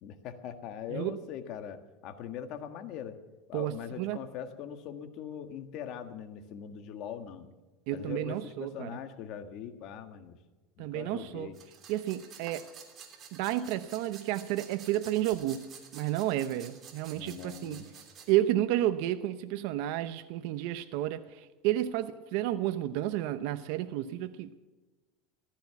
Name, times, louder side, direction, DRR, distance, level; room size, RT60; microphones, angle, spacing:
voice 1, 0.0-3.2 3.5-7.5 7.9-10.4 10.8-11.6 17.1-17.9, left 8 dB, 55° left, 8 dB, 1.7 m, -41 dB
voice 2, 3.5-4.2 7.9-9.0 10.8-11.5 11.9-12.7 13.3-15.7 15.9-17.8 18.3-24.5, right 13 dB, 65° right, 10 dB, 0.8 m, -31 dB
sound 1, 11.5-18.3, right 7 dB, 35° right, 3.0 m, -51 dB
15.0 x 14.0 x 5.9 m, 1.2 s
supercardioid pair, 140°, 0 cm